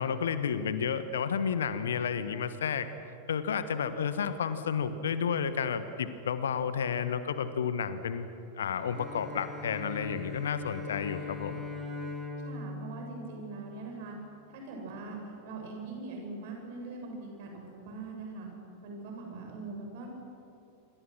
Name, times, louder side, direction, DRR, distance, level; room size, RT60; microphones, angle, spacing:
voice 1, 0.0-2.9 3.3-8.3 8.5-11.6, left 7 dB, 65° left, 12 dB, 1.4 m, -31 dB
Bowed string instrument, 8.7-14.2, left 3 dB, 15° right, 6.0 m, -41 dB
voice 2, 12.4-14.2 14.5-18.5 18.8-20.1, right 3 dB, 50° right, 1 dB, 7.3 m, -42 dB
27.5 x 25.5 x 6.3 m, 2.6 s
figure-of-eight pair, 90°, 0 cm